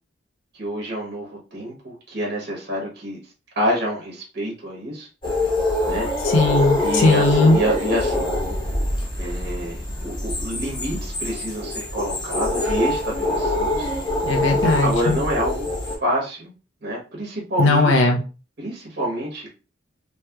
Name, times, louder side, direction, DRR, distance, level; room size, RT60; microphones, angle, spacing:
voice 1, 0.5-3.2 3.5-5.1 5.8-6.1 6.8-8.3 9.2-13.9 14.8-15.7 16.0-16.5 16.8-18.1 18.6-19.5, equal, 55° right, -3 dB, 1.1 m, -27 dB
sound 1, 5.2-16.0, left 2 dB, 25° left, 0.9 m, -24 dB
voice 2, 6.3-7.6 14.3-15.2 17.6-18.2, left 2 dB, 80° left, 3 dB, 0.6 m, -18 dB
3.0 x 2.9 x 2.3 m, 0.33 s
head